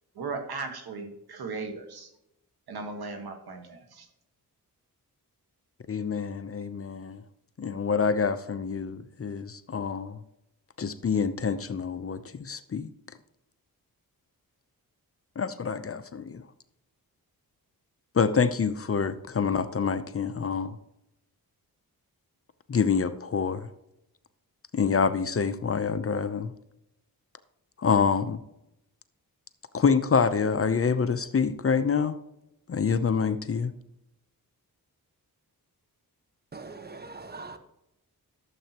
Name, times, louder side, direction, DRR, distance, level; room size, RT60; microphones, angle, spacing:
voice 1, 0.2-2.1 2.7-4.1, right 4 dB, 80° right, 1.7 m, -37 dB
voice 2, 5.9-7.2 7.6-10.2 10.8-12.9 15.4-16.4 18.1-20.8 22.7-23.7 24.7-26.5 27.8-28.4 29.7-32.2 32.7-33.7, left 6 dB, 40° left, 0.7 m, -26 dB
voice 3, 36.5-37.6, right 3 dB, 25° right, 1.2 m, -41 dB
12.5 x 7.5 x 3.0 m
cardioid pair, 80°, 37 cm